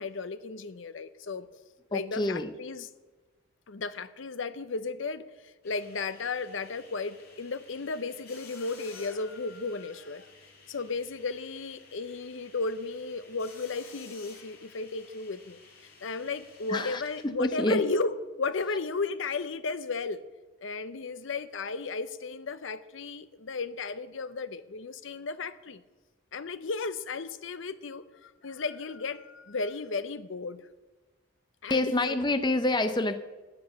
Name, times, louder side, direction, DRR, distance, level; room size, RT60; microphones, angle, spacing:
voice 1, 0.0-1.5 1.9-2.9 3.7-10.3 10.7-15.6 16.0-20.2 20.6-25.8 26.3-30.6 31.6-32.2, left 4 dB, 65° left, 13 dB, 0.7 m, -34 dB
voice 2, 1.9-2.5 16.7-17.8 31.7-33.2, left 2 dB, 20° left, 9 dB, 0.7 m, -27 dB
sound 1, 5.6-17.2, left 4 dB, 50° left, 2.7 m, -54 dB
11.0 x 8.6 x 7.9 m, 1.2 s
head